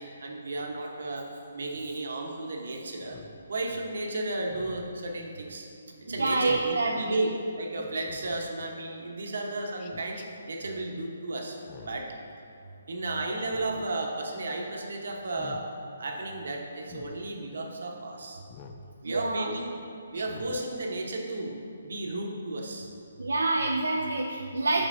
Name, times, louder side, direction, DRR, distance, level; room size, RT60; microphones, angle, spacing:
voice 1, 0.0-3.2 3.5-5.7 6.1-12.1 12.9-15.7 16.0-18.4 19.0-19.7 20.1-22.9, right 2 dB, 70° right, 1 dB, 1.0 m, -34 dB
Speech synthesizer, 3.0-3.4 4.5-5.0 6.4-6.7 7.9-8.4 9.8-10.3 11.6-12.1 13.4-13.9 15.2-15.6 16.8-17.1 18.5-18.8 20.1-20.6, left 7 dB, 35° left, 0.4 m, -47 dB
voice 2, 6.1-7.2 19.0-19.5 23.2-24.9, right 2 dB, 90° right, 1 dB, 0.4 m, -27 dB
8.8 x 5.5 x 2.6 m, 2.5 s
hypercardioid pair, 150°, 0 cm